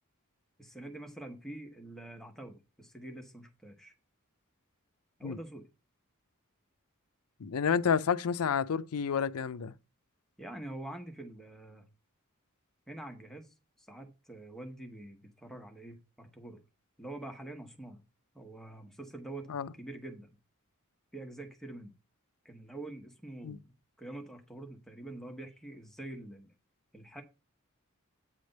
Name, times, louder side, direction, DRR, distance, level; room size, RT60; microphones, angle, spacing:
voice 1, 0.6-3.9 5.2-5.7 10.4-11.9 12.9-16.6 17.0-18.0 18.3-19.5 19.8-20.3 21.1-21.9 22.4-23.6 24.0-26.5 26.9-27.2, right 1 dB, ahead, 1.0 m, -45 dB
voice 2, 7.4-9.7 19.5-19.7 23.4-23.6, left 6 dB, 85° left, 0.5 m, -30 dB
8.8 x 3.3 x 6.4 m
head